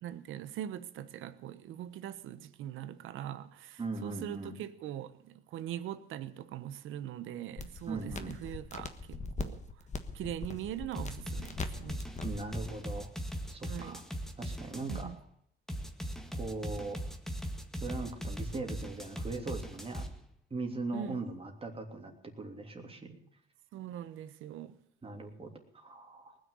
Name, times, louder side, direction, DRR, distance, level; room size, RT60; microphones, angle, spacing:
voice 1, 0.0-9.7 10.1-12.0 13.7-14.0 14.9-15.2 20.9-21.2 23.7-24.8, right 11 dB, 85° right, 1.0 m, -42 dB
voice 2, 3.8-4.6 7.9-8.3 12.2-13.1 13.5-14.0 14.4-15.1 16.4-17.0 17.8-20.0 20.5-23.2 25.0-26.4, right 3 dB, 30° right, 3.1 m, -40 dB
sound 1, 7.6-12.6, left 4 dB, 35° left, 1.5 m, -41 dB
sound 2, 10.9-15.1 15.7-20.1, equal, ahead, 1.8 m, -39 dB
19.5 x 6.6 x 9.9 m
cardioid pair, 90°, 20 cm